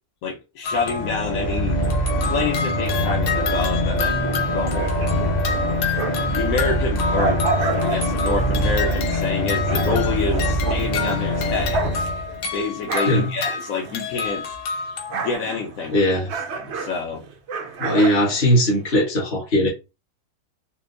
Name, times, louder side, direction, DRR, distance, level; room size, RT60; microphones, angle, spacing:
voice 1, 0.2-1.8 2.3-4.9 6.3-7.4 7.8-11.8 12.5-14.5 15.1-16.0 16.5-17.2, left 4 dB, 65° left, 1.0 m, -27 dB
sound 1, 0.6-1.5 1.8-15.3, left 5 dB, 85° left, 1.4 m, -30 dB
sound 2, 0.7-12.6, equal, 45° left, 0.5 m, -24 dB
sound 3, 4.6-6.4 6.8-14.4 14.7-19.0, right 4 dB, 75° right, 0.6 m, -31 dB
voice 2, 15.9-16.3 17.8-19.7, equal, 30° left, 1.2 m, -19 dB
4.2 x 2.2 x 2.5 m
omnidirectional pair, 1.8 m